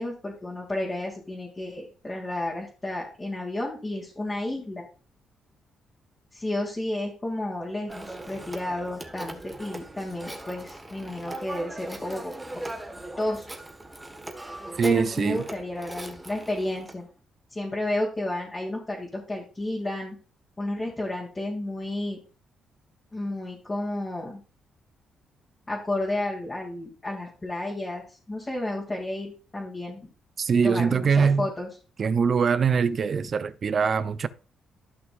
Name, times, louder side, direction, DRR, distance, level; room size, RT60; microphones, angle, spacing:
voice 1, 0.0-4.9 6.3-12.6 13.2-13.5 14.8-17.1 17.5-20.2 20.6-22.2 23.1-24.4 25.7-30.1 30.6-31.7, left 1 dB, 20° left, 2.5 m, -32 dB
Telephone, 7.9-17.0, right 1 dB, 10° right, 1.4 m, -40 dB
voice 2, 14.8-15.4 30.4-31.5 32.0-34.3, right 6 dB, 50° right, 0.6 m, -23 dB
14.0 x 5.9 x 2.5 m
cardioid pair, 85°, 0 cm